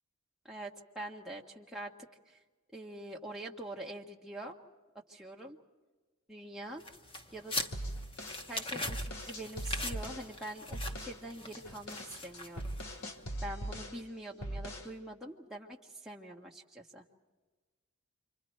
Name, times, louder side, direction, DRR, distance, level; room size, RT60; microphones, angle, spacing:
voice 1, 0.4-2.4 2.7-4.6 5.1-5.6 6.3-6.8 7.3-7.6 8.5-12.7 13.4-17.0, right 1 dB, ahead, -2 dB, 1.6 m, -44 dB
sound 1, 6.8-13.0, left 2 dB, 25° left, 1.1 m, -41 dB
sound 2, 7.7-10.3 10.7-11.2 11.5-14.0 14.4-14.9, right 1 dB, 80° left, 2.3 m, -40 dB
28.5 x 25.5 x 4.6 m, 1.3 s
head